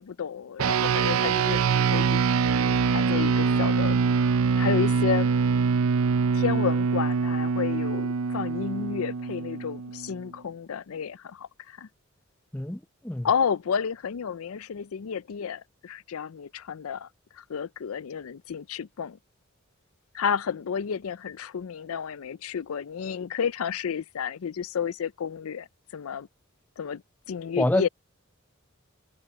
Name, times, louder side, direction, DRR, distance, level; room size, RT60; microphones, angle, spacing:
voice 1, 0.0-2.2 2.9-4.0 4.5-5.3 6.3-11.9 13.2-19.2 20.1-25.7 25.9-26.3 26.8-27.9, left 7 dB, 85° left, 0.5 m, -31 dB
sound 1, 0.6-10.2, right 5 dB, 85° right, 0.5 m, -24 dB
voice 2, 12.5-13.3 27.6-27.9, left 1 dB, 10° left, 0.6 m, -26 dB
head